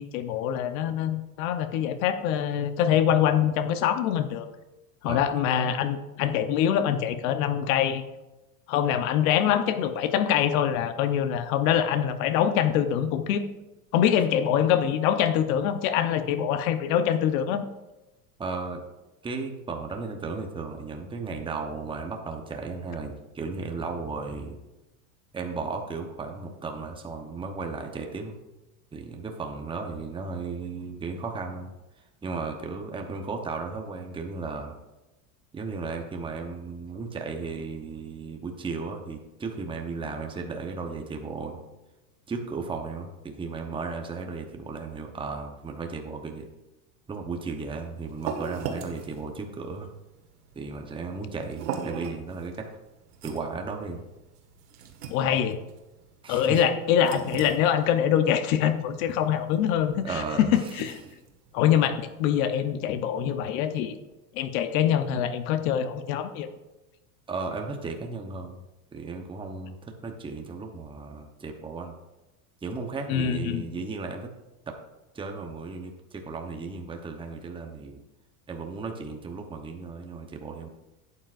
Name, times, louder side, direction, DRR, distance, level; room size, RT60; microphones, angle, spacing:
voice 1, 0.0-4.5 5.0-8.0 8.7-13.4 13.9-17.6 55.1-55.6 56.3-61.0 61.5-63.9 64.3-66.5 73.1-73.6, left 9 dB, 65° left, 10 dB, 0.9 m, -24 dB
voice 2, 18.4-18.8 19.2-24.6 25.3-28.4 28.9-31.7 32.2-34.8 35.5-41.6 42.3-46.5 47.1-49.9 50.5-52.8 53.2-54.0 56.2-56.6 60.0-60.7 67.3-68.6 68.9-72.0 72.6-74.3 74.7-74.8 75.1-78.0 78.5-80.7, right 4 dB, 10° right, 3 dB, 0.9 m, -35 dB
sound 1, 47.5-62.5, right 6 dB, 85° right, 1.4 m, -41 dB
11.5 x 8.6 x 2.5 m, 1.0 s
supercardioid pair, 125°, 45 cm